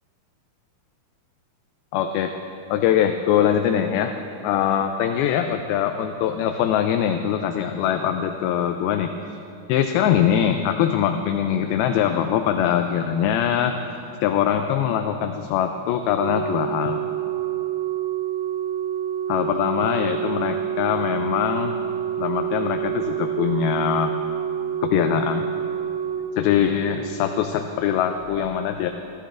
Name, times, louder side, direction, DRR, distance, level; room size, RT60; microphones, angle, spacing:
voice 1, 1.9-2.3 2.7-4.1 4.4-9.4 9.7-13.7 14.2-17.0 19.3-21.7 22.2-24.2 24.8-25.5 26.4-28.9, left 9 dB, 80° left, 6 dB, 2.3 m, -22 dB
Organ, 16.2-27.1 28.2-28.4, right 9 dB, 80° right, 2.5 m, -28 dB
26.0 x 12.0 x 2.5 m, 2.9 s
omnidirectional pair, 4.5 m